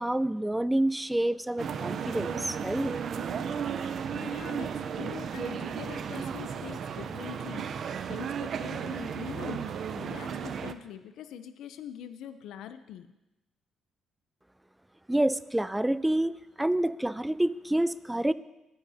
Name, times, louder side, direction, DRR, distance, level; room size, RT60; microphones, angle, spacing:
voice 1, 0.0-2.9 15.1-18.3, right 1 dB, 10° right, 15 dB, 0.5 m, -28 dB
sound 1, 1.6-10.7, right 7 dB, 60° right, 0.7 m, -34 dB
voice 2, 4.1-13.1, left 9 dB, 85° left, 9 dB, 0.6 m, -43 dB
20.0 x 10.5 x 2.8 m, 0.95 s
cardioid pair, 90°, 0 cm